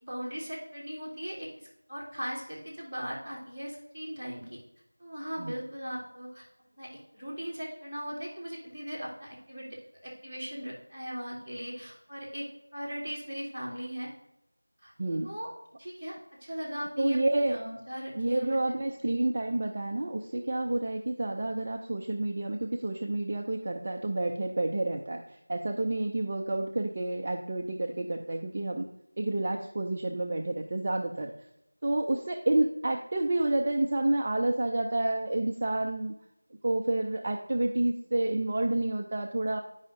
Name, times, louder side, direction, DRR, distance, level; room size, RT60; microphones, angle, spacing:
voice 1, 0.0-4.6 5.0-6.5 6.8-9.7 10.0-14.1 14.8-14.9 15.2-15.5 15.8-19.1, equal, 5° left, -19 dB, 2.4 m, -39 dB
voice 2, 15.0-15.3 17.0-17.6 18.2-28.8 29.2-31.3 31.8-36.1 36.6-39.6, right 2 dB, 25° right, 3 dB, 0.3 m, -29 dB
9.5 x 5.5 x 2.6 m, 0.84 s
figure-of-eight pair, 175°, 0 cm